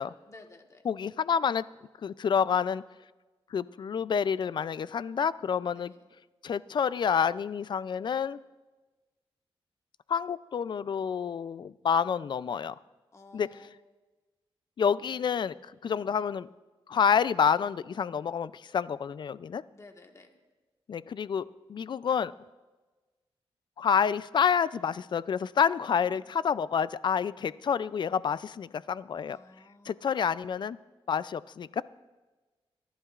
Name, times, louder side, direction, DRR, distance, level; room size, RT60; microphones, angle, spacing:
voice 1, 0.2-0.8 5.7-6.0 13.1-13.8 19.7-20.3 25.8-26.3 29.3-30.0, left 2 dB, 30° left, 4 dB, 1.4 m, -54 dB
voice 2, 0.9-1.6 2.0-2.8 3.5-5.9 6.4-8.4 10.1-12.7 13.3-13.5 14.8-16.5 16.9-19.6 20.9-22.3 23.8-29.4 29.9-30.8 31.1-31.8, left 7 dB, 50° left, 17 dB, 0.4 m, -28 dB
25.0 x 11.0 x 2.5 m, 1.2 s
cardioid pair, 90°, 10 cm